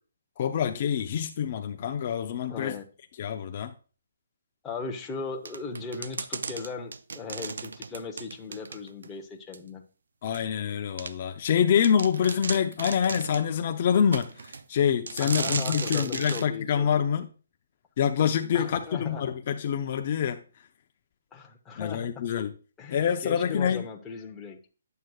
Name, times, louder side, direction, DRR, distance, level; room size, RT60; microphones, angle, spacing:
voice 1, 0.4-2.7 3.2-3.7 10.2-17.3 18.0-20.4 21.8-22.5 22.9-23.8, left 8 dB, 45° left, 0.5 m, -26 dB
voice 2, 2.5-2.8 4.6-9.8 15.2-17.0 18.5-19.2 21.3-22.3 22.8-24.6, left 4 dB, 10° left, 0.9 m, -38 dB
sound 1, 5.5-9.1 9.5-9.6 10.3-10.4 11.0-11.1 11.5-11.6 11.8-13.5 14.1-14.6 15.1-16.5, right 4 dB, 75° right, 0.5 m, -35 dB
9.3 x 7.6 x 2.4 m
hypercardioid pair, 155°, 0 cm